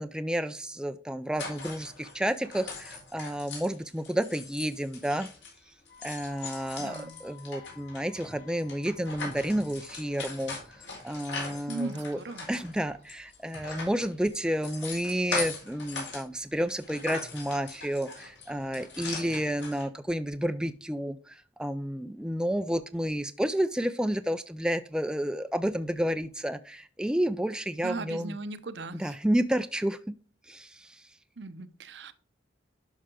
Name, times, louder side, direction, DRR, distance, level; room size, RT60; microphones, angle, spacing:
voice 1, 0.0-5.3 5.7-5.8 6.0-12.2 12.5-28.4 28.9-30.2 30.5-31.1, equal, 5° right, 10 dB, 0.3 m, -31 dB
sound 1, 1.3-5.6 5.9-16.2 16.6-19.8, left 4 dB, 70° left, 4.1 m, -40 dB
Wind instrument woodwind instrument, 5.9-13.8, left 9 dB, 45° left, 5.3 m, -57 dB
voice 2, 6.8-7.2 11.7-12.5 27.8-29.1 31.4-32.1, right 3 dB, 65° right, 13 dB, 0.7 m, -38 dB
11.5 x 5.6 x 3.7 m, 0.41 s
head